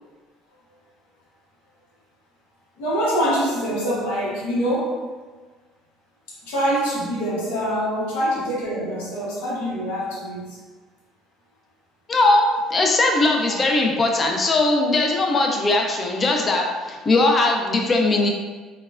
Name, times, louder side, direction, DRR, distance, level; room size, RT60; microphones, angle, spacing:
voice 1, 2.8-5.0 6.4-10.6 13.4-13.6, equal, 70° left, -6 dB, 1.0 m, -24 dB
voice 2, 12.1-18.3, left 2 dB, 30° left, 1 dB, 0.5 m, -20 dB
3.9 x 2.2 x 2.4 m, 1.4 s
hypercardioid pair, 60°, 0 cm